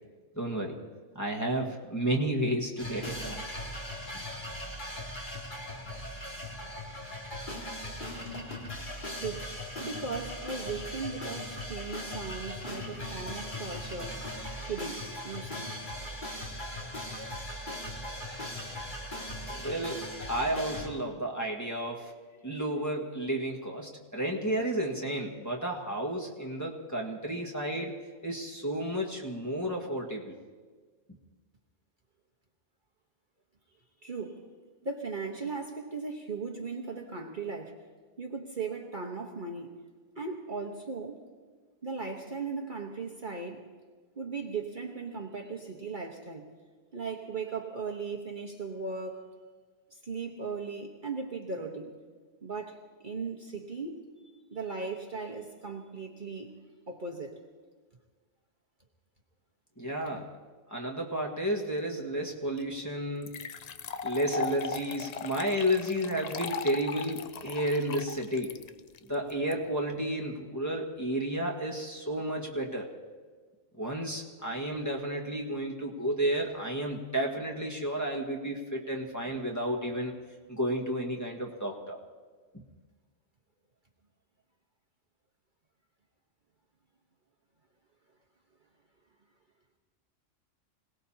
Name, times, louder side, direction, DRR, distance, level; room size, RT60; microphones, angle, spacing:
voice 1, 0.4-0.7 1.2-3.4 19.5-20.0 20.3-22.1 22.4-27.9 28.2-30.4 59.8-60.3 60.7-63.4 64.0-68.6 69.1-72.9 73.8-80.1 80.5-82.0, right 1 dB, 15° left, -2 dB, 1.7 m, -32 dB
sound 1, 2.8-20.9, left 1 dB, 40° left, 2.3 m, -39 dB
voice 2, 9.2-9.5 9.8-14.2 14.7-15.7 34.0-34.4 34.8-37.7 38.2-39.8 40.2-41.2 41.8-43.6 44.2-46.5 46.9-49.3 50.0-52.0 52.4-54.1 54.5-56.5 56.9-57.4 59.8-59.9, right 4 dB, 40° right, 0 dB, 1.3 m, -37 dB
sound 2, 62.6-62.7 63.2-69.5, left 6 dB, 85° left, 0.3 m, -38 dB
26.0 x 18.5 x 2.9 m, 1.5 s
omnidirectional pair, 1.3 m